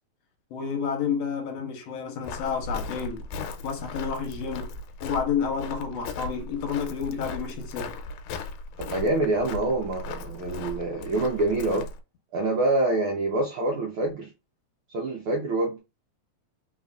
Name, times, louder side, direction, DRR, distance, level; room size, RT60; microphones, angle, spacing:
voice 1, 0.5-3.2 3.6-4.7 5.0-8.0, left 6 dB, 70° left, 1.7 m, -30 dB
Walk footsteps, 2.2-12.0, left 3 dB, 85° left, 2.1 m, -37 dB
voice 2, 8.8-11.9 12.3-14.3 14.9-15.8, right 2 dB, 80° right, 1.1 m, -26 dB
4.1 x 3.9 x 2.3 m
omnidirectional pair, 3.5 m